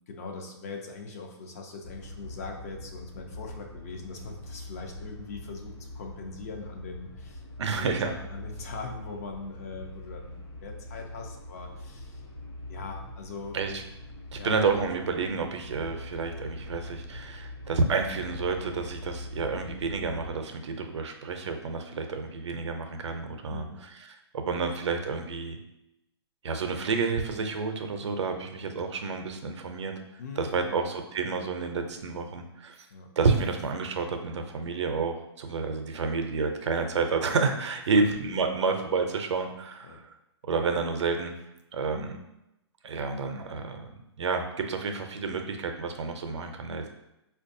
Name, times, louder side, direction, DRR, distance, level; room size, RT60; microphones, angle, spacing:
voice 1, 0.1-12.2 12.7-13.6 14.4-14.6 23.5-23.8 30.2-30.9 32.9-33.1 38.0-38.1 39.8-40.0 41.9-42.2, left 4 dB, 35° left, 3 dB, 0.4 m, -41 dB
sound 1, 1.8-20.3, left 1 dB, 85° left, 1.1 m, -43 dB
voice 2, 7.6-8.1 13.5-13.8 14.3-24.1 24.3-25.6 26.4-29.9 30.4-32.9 33.2-39.9 40.5-41.3 41.7-42.2 42.8-43.9 44.2-46.9, right 4 dB, 80° right, 5 dB, 0.5 m, -29 dB
4.5 x 2.3 x 2.6 m, 0.89 s
hypercardioid pair, 165°, 15 cm